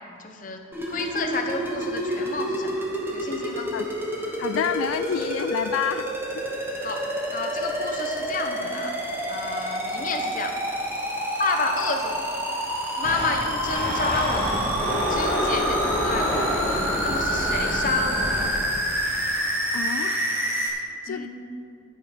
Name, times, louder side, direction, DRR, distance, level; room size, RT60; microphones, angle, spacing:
voice 1, 0.2-0.6 0.9-3.7 6.8-9.0 9.3-10.6 11.4-12.3 13.0-14.5 15.1-16.4 17.0-18.5 21.1-21.3, left 3 dB, 40° left, 4 dB, 1.0 m, -30 dB
sound 1, 0.7-20.7, right 1 dB, 10° right, 1.4 m, -28 dB
voice 2, 4.4-6.1 6.3-6.4 19.7-21.3, left 8 dB, 80° left, 11 dB, 0.3 m, -29 dB
sound 2, 13.0-18.5, left 1 dB, 10° left, 3.2 m, -27 dB
15.0 x 8.3 x 4.3 m, 2.7 s
head